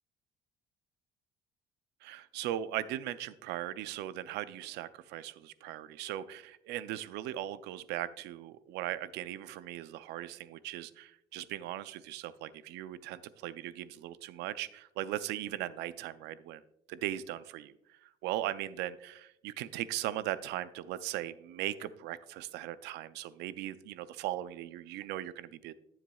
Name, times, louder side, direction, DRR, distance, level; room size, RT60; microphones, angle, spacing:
voice 1, 2.0-16.6 16.9-17.7 18.0-25.7, right 13 dB, 90° right, 15 dB, 0.5 m, -38 dB
12.0 x 7.2 x 2.3 m, 0.78 s
cardioid pair, 110°, 17 cm